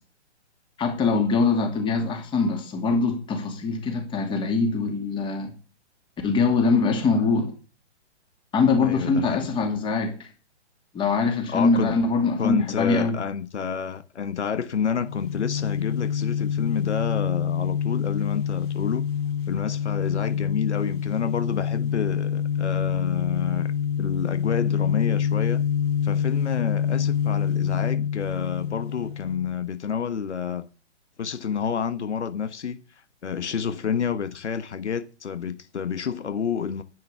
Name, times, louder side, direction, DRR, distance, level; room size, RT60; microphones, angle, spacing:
voice 1, 0.8-5.5 6.2-7.5 8.5-10.1 10.9-13.2, left 4 dB, 15° left, 2.6 m, -23 dB
voice 2, 8.8-9.5 11.5-11.9 12.4-19.0 19.5-23.7 24.0-25.6 26.0-30.6 31.2-32.8 33.2-36.8, left 7 dB, 75° left, 1.3 m, -29 dB
sound 1, 15.0-29.5, left 8 dB, 35° left, 3.9 m, -26 dB
10.5 x 9.6 x 6.9 m
hypercardioid pair, 145°, 34 cm